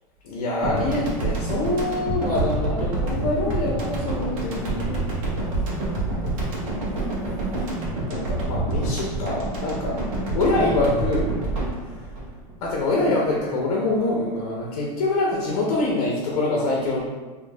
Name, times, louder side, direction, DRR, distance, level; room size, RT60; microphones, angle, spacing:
voice 1, 0.2-5.1 8.1-10.0 10.3-11.3 12.6-17.1, left 2 dB, 65° left, -3 dB, 0.8 m, -25 dB
sound 1, 0.6-13.1, right 2 dB, 65° right, 1.0 m, -27 dB
4.4 x 2.7 x 2.3 m, 1.3 s
supercardioid pair, 170°, 19 cm